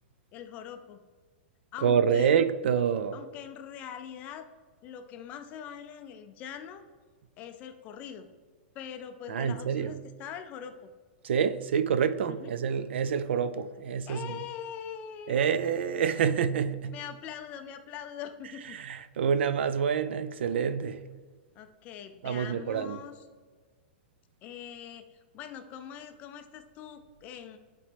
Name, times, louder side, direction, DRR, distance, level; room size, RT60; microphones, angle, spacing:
voice 1, 0.3-1.0 1.7-2.4 3.1-4.5 4.8-6.8 7.4-8.3 8.7-10.9 12.3-12.5 14.1-15.5 16.9-18.8 21.6-23.2 24.4-27.6, left 8 dB, 25° left, 0.4 m, -42 dB
voice 2, 1.8-3.2 9.3-9.9 11.2-14.4 15.3-16.9 18.7-21.0 22.2-23.0, right 7 dB, 75° right, 0.4 m, -27 dB
10.0 x 4.3 x 3.4 m
supercardioid pair, 165°, 6 cm